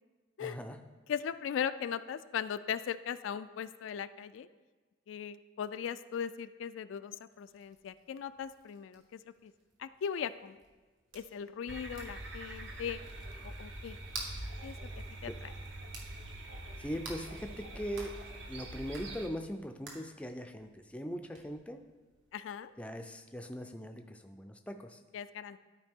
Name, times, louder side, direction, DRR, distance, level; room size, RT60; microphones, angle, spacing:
voice 1, 0.4-0.8 15.3-15.4 16.8-18.1 18.5-21.8 22.8-25.0, equal, 5° left, 5 dB, 0.4 m, -40 dB
voice 2, 1.1-4.5 5.1-9.0 9.4-9.5 9.8-10.6 11.1-13.0 13.4-14.0 14.6-14.8 15.2-15.3 22.3-22.7 25.1-25.6, left 8 dB, 80° left, 13 dB, 0.3 m, -38 dB
sound 1, 7.3-23.7, right 3 dB, 85° right, 1.6 m, -53 dB
sound 2, 11.7-19.3, right 1 dB, 65° right, 0.9 m, -44 dB
12.5 x 4.8 x 3.6 m, 1.3 s
head